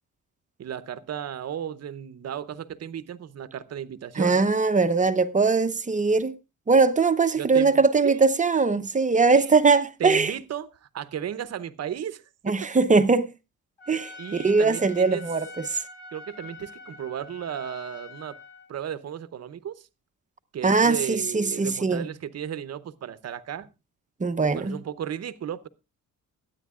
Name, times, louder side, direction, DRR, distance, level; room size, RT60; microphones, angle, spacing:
voice 1, 0.6-4.5 7.4-8.2 9.3-9.5 10.0-12.5 14.2-15.2 16.1-18.4 18.7-19.9 20.5-23.7 24.4-25.7, right 9 dB, 50° right, 0.8 m, -35 dB
voice 2, 4.2-6.3 6.7-10.3 12.5-13.3 13.9-15.8 20.6-22.1 24.2-24.8, right 4 dB, 25° right, 0.7 m, -21 dB
Trumpet, 13.8-18.7, left 3 dB, 20° left, 7.3 m, -45 dB
22.0 x 9.3 x 2.4 m
cardioid pair, 110°, 33 cm